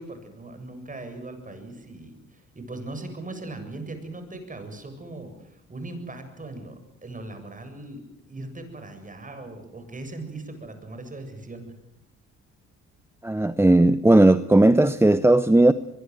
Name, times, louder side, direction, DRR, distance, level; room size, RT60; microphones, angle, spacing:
voice 1, 0.0-6.7 7.0-8.0 8.3-11.7, right 2 dB, 25° right, 7.5 m, -39 dB
voice 2, 13.2-15.7, right 2 dB, 10° right, 0.9 m, -17 dB
24.0 x 22.5 x 8.1 m
cardioid pair, 90°, 30 cm